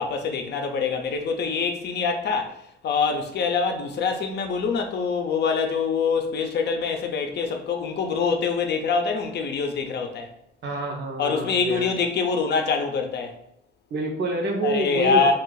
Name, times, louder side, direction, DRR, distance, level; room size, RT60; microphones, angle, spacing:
voice 1, 0.0-2.6 2.8-10.3 11.2-13.4 14.6-15.3, left 5 dB, 60° left, 0.6 m, -25 dB
voice 2, 10.6-12.0 13.9-15.3, right 1 dB, 60° right, 0.8 m, -27 dB
2.6 x 2.4 x 3.8 m
cardioid pair, 90°, 20 cm